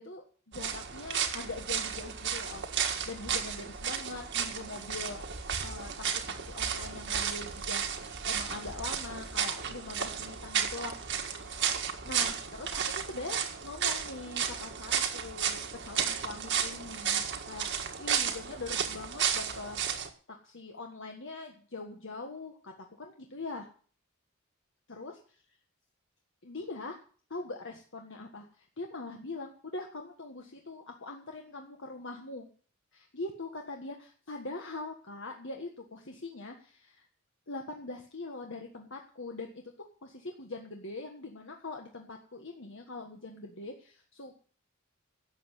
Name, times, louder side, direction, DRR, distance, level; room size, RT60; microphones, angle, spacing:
voice 1, 0.0-5.2 5.6-11.0 11.3-11.6 12.0-23.7 24.9-25.4 26.4-27.0 27.3-32.5 32.9-37.0 37.5-44.4, left 3 dB, 60° left, 2 dB, 1.6 m, -42 dB
sound 1, 0.5-20.1, right 8 dB, 55° right, 1.7 m, -33 dB
12.5 x 7.8 x 8.2 m, 0.43 s
head